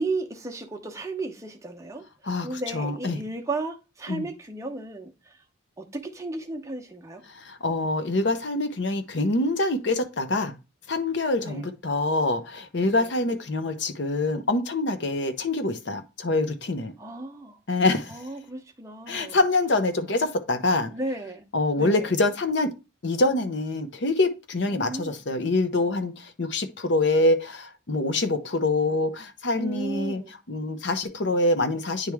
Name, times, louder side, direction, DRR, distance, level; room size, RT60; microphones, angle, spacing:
voice 1, 0.0-2.0 2.4-5.4 5.8-7.2 11.4-11.6 12.9-13.1 17.0-17.6 18.1-19.4 20.8-21.4 21.8-22.1 24.7-25.2 29.6-30.3, right 2 dB, 15° right, 0.8 m, -34 dB
voice 2, 2.2-3.2 4.1-4.3 7.3-10.6 10.9-16.9 17.7-18.2 19.1-20.9 21.5-22.7 23.0-30.2 30.5-32.1, left 2 dB, 60° left, 0.7 m, -25 dB
9.4 x 3.1 x 3.5 m
head